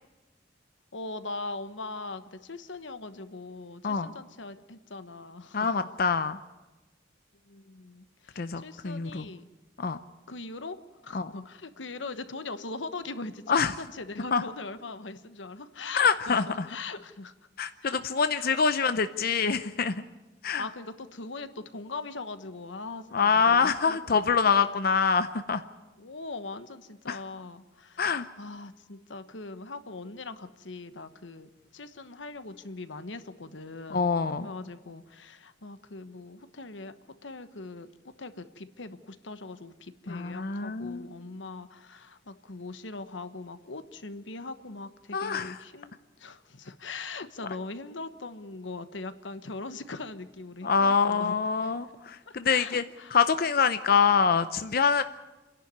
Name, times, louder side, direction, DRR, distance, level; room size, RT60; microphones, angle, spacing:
voice 1, 0.9-5.8 7.4-9.5 10.3-10.8 11.0-17.3 17.8-18.0 18.3-18.6 20.6-24.3 26.0-34.1 34.4-36.9 37.2-37.9 38.2-45.9 46.2-51.3 51.6-51.7 52.3-53.2, left 3 dB, 85° left, 11 dB, 1.2 m, -41 dB
voice 2, 5.5-6.4 8.4-9.3 9.8-10.0 11.1-11.3 13.5-13.7 14.3-14.4 15.9-16.7 17.6-20.0 20.4-20.7 23.1-25.6 27.1-27.2 28.0-28.3 33.9-34.5 40.1-41.1 45.1-45.6 50.6-52.8 53.1-55.0, left 5 dB, 55° left, 10 dB, 0.7 m, -25 dB
28.0 x 11.0 x 9.5 m, 1.1 s
head